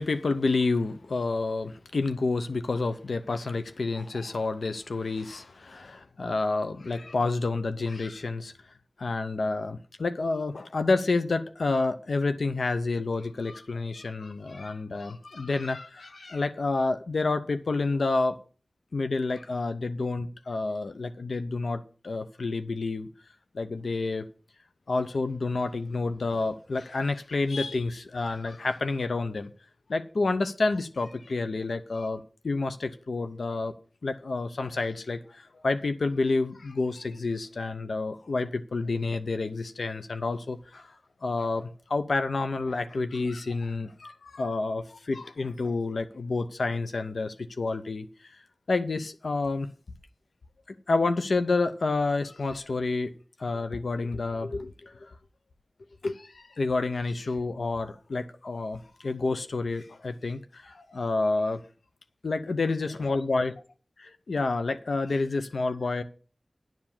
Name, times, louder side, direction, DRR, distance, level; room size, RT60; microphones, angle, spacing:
voice 1, 0.0-8.5 9.0-18.4 18.9-23.1 23.5-24.3 24.9-29.5 29.9-33.7 34.0-40.9 41.2-48.1 48.7-49.7 50.7-53.1 53.4-55.1 56.0-61.6 62.2-63.5 64.0-66.0, left 3 dB, 90° left, 0.6 m, -29 dB
10.5 x 4.9 x 7.3 m
cardioid pair, 40°, 0 cm